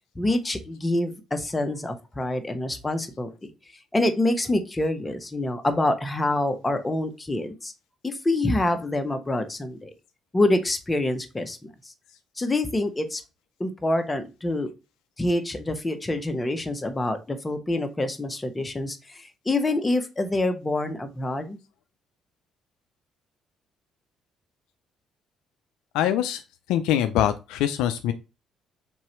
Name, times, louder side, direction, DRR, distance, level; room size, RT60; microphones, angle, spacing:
voice 1, 0.1-3.3 3.9-7.7 8.0-9.9 10.3-11.7 12.4-13.2 13.6-14.7 15.2-21.6, left 2 dB, 20° left, 7 dB, 1.0 m, -26 dB
voice 2, 25.9-26.4 26.7-28.1, left 11 dB, 80° left, 9 dB, 0.4 m, -23 dB
3.8 x 3.0 x 4.3 m, 0.28 s
supercardioid pair, 60°, 0 cm